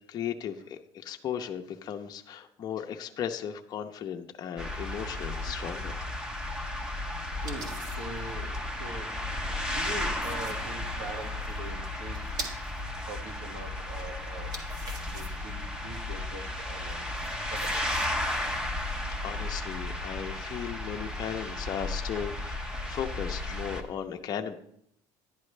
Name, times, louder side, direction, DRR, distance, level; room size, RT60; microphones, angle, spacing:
voice 1, 0.1-6.0 19.2-24.5, left 8 dB, 40° left, 3 dB, 0.7 m, -36 dB
sound 1, 4.6-23.8, left 1 dB, 5° right, 1.0 m, -34 dB
sound 2, 4.8-6.0 7.3-8.3 9.7-12.8 14.3-15.5 16.9-18.1, right 2 dB, 40° right, 1.7 m, -44 dB
voice 2, 7.4-9.2 9.4-12.6 13.1-14.6 15.1-17.1 17.5-18.1, right 2 dB, 90° right, 4 dB, 1.8 m, -43 dB
10.5 x 10.5 x 3.3 m, 0.71 s
cardioid pair, 130°, 10 cm